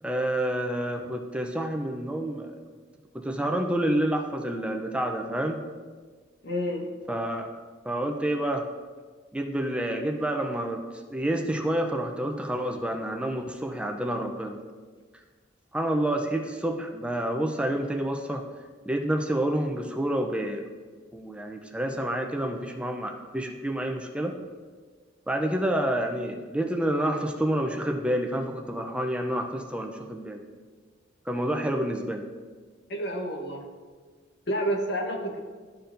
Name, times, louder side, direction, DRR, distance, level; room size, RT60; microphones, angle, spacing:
voice 1, 0.0-2.5 3.1-5.6 7.1-7.5 7.9-8.7 9.3-10.8 11.1-14.6 15.7-18.4 18.9-20.6 21.1-24.3 25.3-30.4 31.3-32.2, right 1 dB, 5° right, 3 dB, 0.5 m, -28 dB
voice 2, 6.4-6.9 32.9-33.6 34.5-35.4, equal, 65° left, 1 dB, 1.0 m, -29 dB
13.0 x 4.6 x 2.6 m, 1.5 s
head